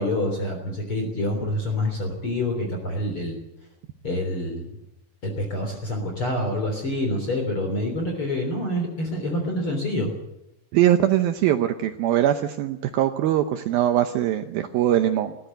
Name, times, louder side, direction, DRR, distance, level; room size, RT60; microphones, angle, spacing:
voice 1, 0.0-3.4 4.0-4.8 5.2-10.1, left 1 dB, 35° left, 2 dB, 4.1 m, -27 dB
voice 2, 10.7-15.4, right 12 dB, 75° right, 7 dB, 2.6 m, -22 dB
20.5 x 15.0 x 9.4 m, 0.86 s
omnidirectional pair, 4.5 m